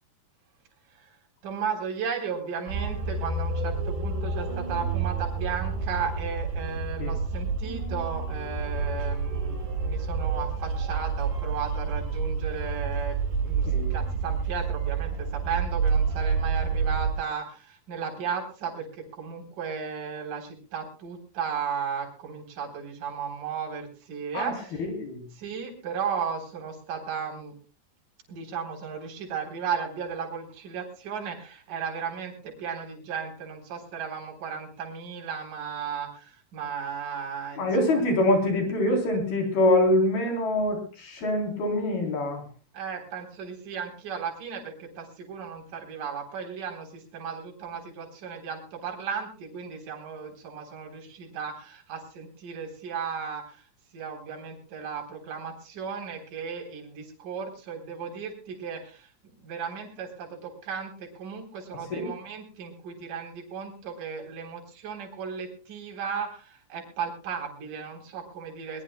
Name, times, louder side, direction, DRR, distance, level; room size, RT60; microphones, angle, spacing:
voice 1, 1.4-13.2 13.4-24.8 25.3-27.5 28.3-38.0 42.7-53.7 53.9-68.8, right 6 dB, 50° right, 2 dB, 5.1 m, -35 dB
sound 1, 2.7-17.1, right 4 dB, 75° right, 5.8 m, -29 dB
voice 2, 24.8-25.2 37.6-42.4 61.9-62.1, left 1 dB, 60° left, 3 dB, 5.4 m, -24 dB
22.5 x 21.0 x 2.2 m, 0.35 s
omnidirectional pair, 4.9 m